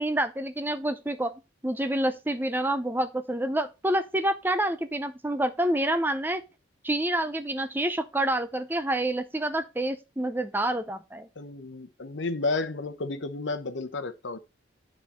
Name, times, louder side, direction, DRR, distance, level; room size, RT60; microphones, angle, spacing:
voice 1, 0.0-1.3 1.6-6.4 6.8-11.3, right 1 dB, 10° right, 0.5 m, -28 dB
voice 2, 11.4-14.4, left 3 dB, 75° left, 0.8 m, -32 dB
9.3 x 4.4 x 4.2 m
head